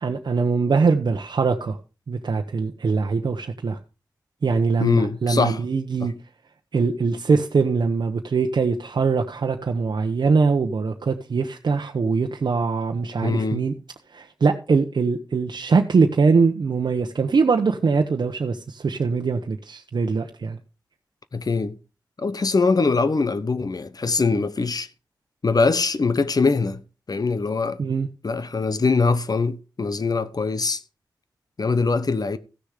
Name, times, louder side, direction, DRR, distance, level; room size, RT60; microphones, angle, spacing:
voice 1, 0.0-1.8 2.1-3.8 4.4-6.1 6.7-13.7 14.1-20.6 27.8-28.1, right 4 dB, 75° right, 0.9 m, -22 dB
voice 2, 4.8-5.6 6.0-6.1 13.2-13.6 21.3-21.8 22.2-24.9 25.4-26.8 27.1-27.8 28.2-30.8 31.6-32.4, left 4 dB, 60° left, 1.0 m, -22 dB
15.0 x 6.5 x 4.9 m
cardioid pair, 45°, 8 cm